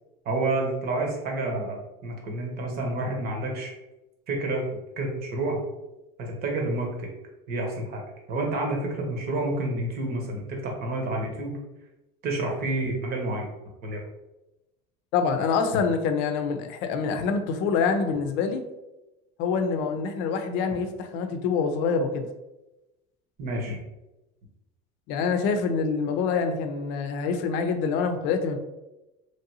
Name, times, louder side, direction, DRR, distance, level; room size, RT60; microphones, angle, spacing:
voice 1, 0.2-3.7 4.3-4.7 5.0-5.6 6.2-7.1 7.5-8.0 8.3-11.6 12.2-13.5 13.8-14.0 15.7-15.8 23.4-23.8, right 2 dB, 50° right, 0 dB, 1.0 m, -29 dB
voice 2, 15.1-18.6 19.4-22.3 25.1-28.6, left 5 dB, 70° left, 7 dB, 0.5 m, -26 dB
3.2 x 2.6 x 2.7 m, 0.99 s
supercardioid pair, 110°, 20 cm